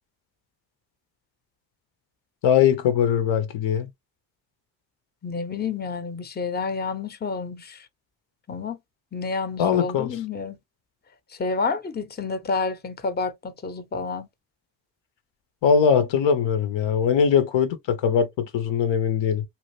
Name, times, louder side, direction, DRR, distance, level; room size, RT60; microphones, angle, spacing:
voice 1, 2.4-3.9 9.6-10.1 15.6-19.4, left 7 dB, 70° left, 0.8 m, -21 dB
voice 2, 5.2-7.9 8.5-8.8 9.1-10.6 11.3-14.3, left 4 dB, 20° left, 0.7 m, -29 dB
2.7 x 2.4 x 3.1 m
supercardioid pair, 55°, 47 cm